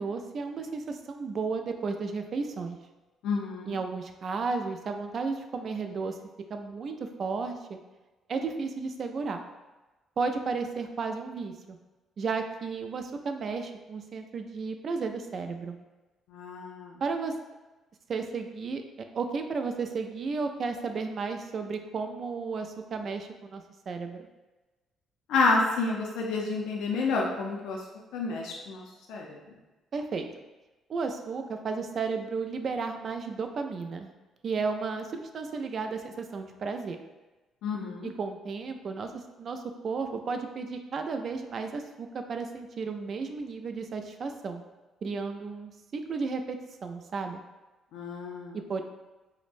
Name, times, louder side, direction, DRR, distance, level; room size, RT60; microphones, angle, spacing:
voice 1, 0.0-2.8 3.7-6.2 6.5-7.8 8.3-9.4 10.2-11.8 12.2-15.8 17.0-17.4 18.1-18.8 19.1-24.2 29.9-30.3 30.9-34.1 34.4-37.0 38.0-39.1 39.4-44.6 45.0-47.4 48.5-48.8, right 4 dB, 50° right, 6 dB, 0.4 m, -33 dB
voice 2, 3.2-3.8 16.3-17.0 25.3-27.8 28.1-29.4 37.6-38.1 47.9-48.6, left 3 dB, 85° left, -2 dB, 0.4 m, -29 dB
4.7 x 2.1 x 2.5 m, 1.1 s
cardioid pair, 105°, 0 cm